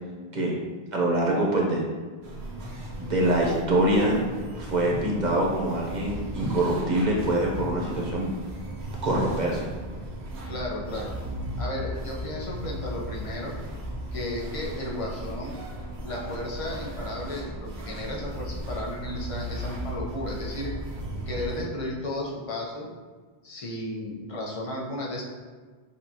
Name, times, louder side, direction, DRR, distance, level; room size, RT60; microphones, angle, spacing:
voice 1, 0.9-1.8 3.0-4.2 4.5-8.3 9.0-9.6, right 1 dB, 50° right, -2 dB, 0.9 m, -24 dB
sound 1, 2.2-21.6, right 1 dB, 90° right, 1.0 m, -36 dB
voice 2, 10.5-11.1 11.6-13.5 14.1-15.5 16.0-20.7 21.3-22.9 23.4-25.2, left 1 dB, 35° left, -3 dB, 0.8 m, -34 dB
6.6 x 2.5 x 2.8 m, 1.5 s
omnidirectional pair, 1.0 m